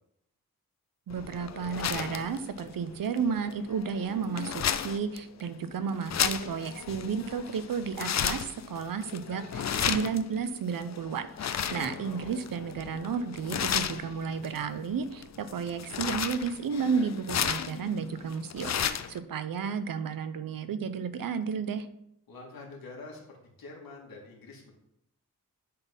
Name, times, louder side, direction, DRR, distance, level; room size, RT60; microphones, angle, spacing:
sound 1, 1.1-19.2, left 8 dB, 50° left, 0.5 m, -34 dB
voice 1, 1.1-18.7 19.1-21.9, right 6 dB, 75° right, 11 dB, 0.8 m, -32 dB
voice 2, 11.7-12.3 22.3-24.7, left 3 dB, 85° left, -1 dB, 2.4 m, -46 dB
10.5 x 4.2 x 5.5 m, 0.80 s
wide cardioid pair, 145°, 35 cm